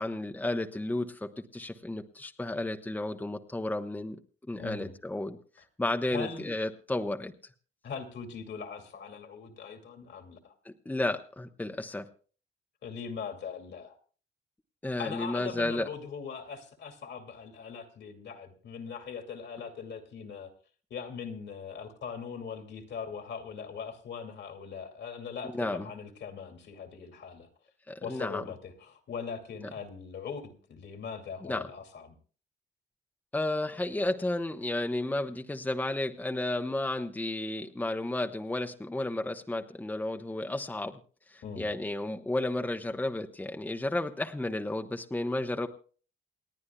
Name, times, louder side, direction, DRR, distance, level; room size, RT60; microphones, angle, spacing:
voice 1, 0.0-4.2 4.5-5.4 5.8-7.3 10.6-12.1 14.8-15.9 25.5-25.9 27.9-28.4 31.4-31.7 33.3-41.0 41.3-45.7, left 2 dB, 10° left, 5 dB, 0.9 m, -32 dB
voice 2, 4.6-4.9 6.1-6.5 7.8-10.5 12.8-14.0 15.0-20.5 20.9-27.5 28.0-32.1 41.4-41.7, left 6 dB, 65° left, 4 dB, 2.3 m, -40 dB
28.5 x 9.6 x 2.3 m, 0.40 s
cardioid pair, 90°, 20 cm